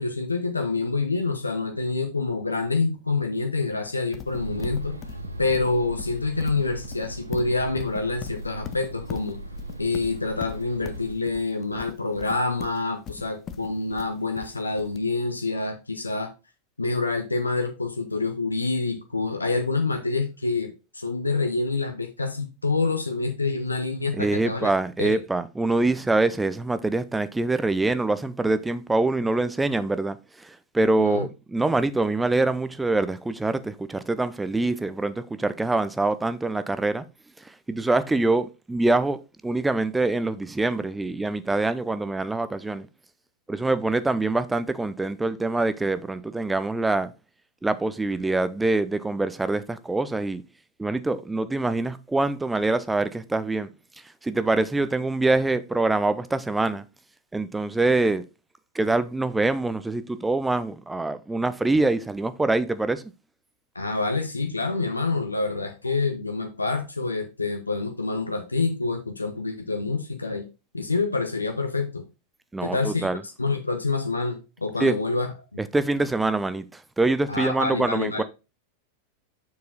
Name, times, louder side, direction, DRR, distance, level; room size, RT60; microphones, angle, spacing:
voice 1, 0.0-5.0 5.4-9.4 9.8-16.3 16.8-24.7 25.0-25.2 31.0-31.3 63.7-70.5 70.7-72.0 72.6-75.6 77.3-78.2, left 3 dB, 80° left, 0.8 m, -27 dB
Livestock farm animals working animals, 4.1-15.0, left 8 dB, 30° left, 0.7 m, -40 dB
sound 1, 4.3-11.1, right 2 dB, 80° right, 0.7 m, -37 dB
voice 2, 24.1-37.0 37.7-39.2 39.4-42.9 43.5-47.1 47.6-50.4 50.8-53.7 54.2-56.8 57.3-58.2 58.7-63.0 72.5-73.2 74.8-75.0 75.6-78.2, right 2 dB, 10° right, 0.5 m, -24 dB
6.9 x 4.7 x 4.0 m
figure-of-eight pair, 90°, 0 cm